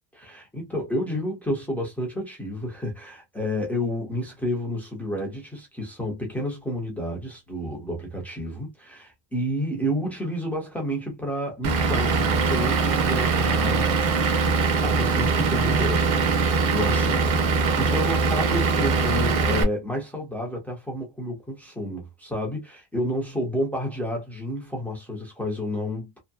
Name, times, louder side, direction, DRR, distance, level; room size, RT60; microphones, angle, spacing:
voice 1, 0.1-14.0 14.8-16.4 16.7-26.1, equal, 5° left, 0.3 m, -30 dB
Vehicle / Engine, 11.6-19.6, right 4 dB, 45° right, 0.6 m, -22 dB
2.7 x 2.5 x 2.2 m
cardioid pair, 175°, 43 cm